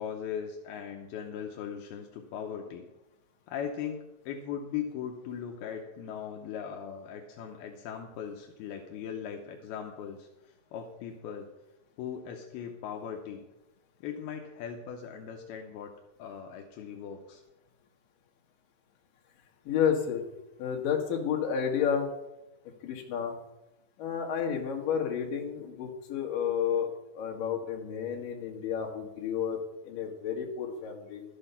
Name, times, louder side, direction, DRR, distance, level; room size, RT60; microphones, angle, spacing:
voice 1, 0.0-2.9 3.5-11.5 12.0-13.5 14.0-15.9 16.2-17.4, left 8 dB, 80° left, 2 dB, 2.8 m, -39 dB
voice 2, 19.7-20.2 20.6-22.1 22.8-23.4 24.0-26.9 27.1-29.6 29.8-31.2, left 8 dB, 65° left, 1 dB, 3.2 m, -31 dB
12.5 x 8.7 x 5.6 m, 0.96 s
omnidirectional pair, 4.4 m